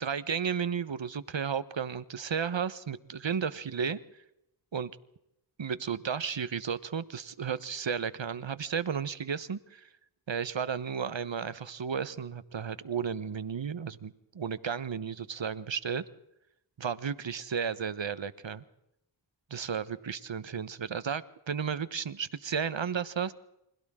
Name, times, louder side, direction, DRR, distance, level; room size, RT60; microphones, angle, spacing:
voice 1, 0.0-4.0 4.7-4.9 5.6-9.9 10.3-16.0 16.8-18.6 19.5-23.3, right 7 dB, 70° right, 14 dB, 1.2 m, -33 dB
29.5 x 25.5 x 3.8 m, 0.82 s
wide cardioid pair, 60°, 46 cm